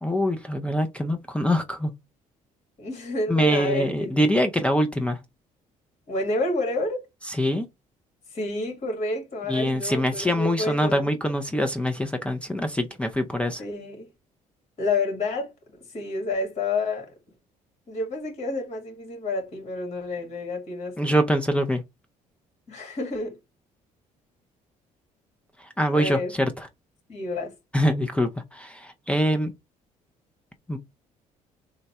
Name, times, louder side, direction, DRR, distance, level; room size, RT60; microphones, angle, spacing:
voice 1, 0.0-1.9 3.3-5.2 7.3-7.7 9.5-13.6 21.0-21.8 25.6-26.7 27.7-29.5 30.7-30.8, equal, 10° left, 0.5 m, -24 dB
voice 2, 2.8-4.3 6.1-7.1 8.3-11.1 13.6-14.1 14.8-15.5 15.8-17.1 17.9-20.9 22.7-23.4 25.9-26.3 27.1-27.6, left 2 dB, 50° left, 2.0 m, -29 dB
3.8 x 2.3 x 4.2 m
cardioid pair, 95°, 15 cm